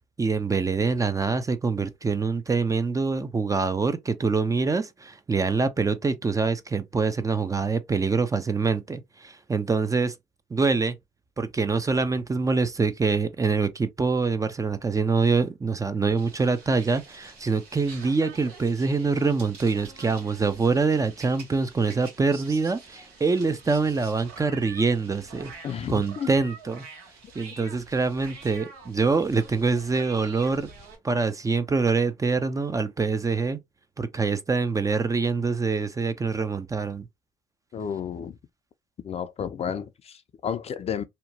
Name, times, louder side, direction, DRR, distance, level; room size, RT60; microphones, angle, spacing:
voice 1, 0.2-10.1 10.5-11.0 11.4-25.5 25.9-26.8 27.4-30.7 31.0-33.6 34.0-37.1, right 4 dB, 20° right, 0.5 m, -25 dB
sound 1, 16.1-31.0, right 4 dB, 80° right, 1.1 m, -46 dB
voice 2, 25.6-26.3 37.7-38.4 39.0-41.0, left 8 dB, 40° left, 0.4 m, -32 dB
2.8 x 2.1 x 2.7 m
supercardioid pair, 70°, 16 cm